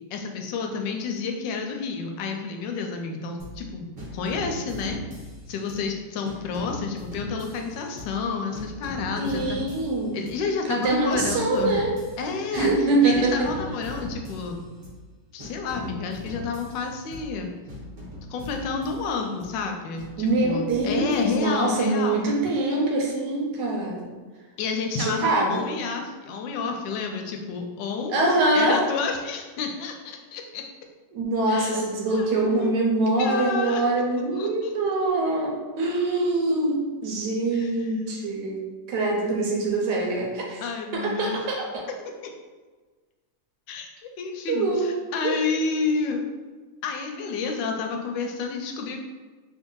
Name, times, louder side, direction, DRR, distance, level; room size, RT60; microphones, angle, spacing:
voice 1, 0.1-3.9 4.1-5.0 5.5-9.6 10.1-11.8 12.2-14.6 15.3-17.5 18.3-22.3 24.6-28.1 28.5-30.6 31.5-31.8 32.1-32.7 33.2-33.8 34.4-34.7 37.5-37.9 39.2-39.6 40.6-41.4 43.7-43.9 44.2-46.2 46.8-49.0, left 5 dB, 80° left, 3 dB, 1.2 m, -30 dB
sound 1, 3.4-3.7 4.0-5.9 6.2-8.3 8.5-10.5 10.8-12.8 13.1-15.1 15.4-17.4 17.7-19.6 20.0-21.6, equal, 45° right, 0.7 m, -40 dB
voice 2, 9.2-10.2 10.6-12.0 12.5-13.5 20.2-24.1 25.0-25.6 28.1-28.8 31.1-38.6 38.9-40.6 40.9-41.8 44.5-44.9 45.2-45.4, right 2 dB, 75° right, -1 dB, 1.2 m, -24 dB
3.1 x 2.6 x 3.7 m, 1.4 s
omnidirectional pair, 2.0 m